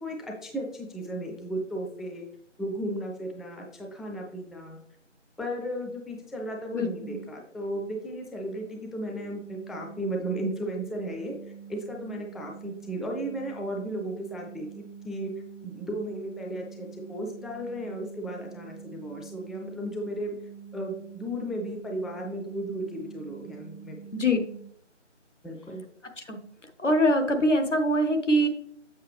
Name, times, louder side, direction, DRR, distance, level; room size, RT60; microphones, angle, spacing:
voice 1, 0.0-2.2 2.6-4.8 5.4-11.3 11.7-15.3 15.6-20.4 20.7-24.0 25.4-25.8, right 1 dB, ahead, 1 dB, 0.4 m, -35 dB
voice 2, 6.7-7.2 24.1-24.4 26.2-26.4 26.8-28.5, equal, 70° left, 6 dB, 1.2 m, -23 dB
sound 1, 9.0-24.7, right 7 dB, 55° left, 0.7 m, -45 dB
7.3 x 6.1 x 3.1 m, 0.68 s
figure-of-eight pair, 165°, 37 cm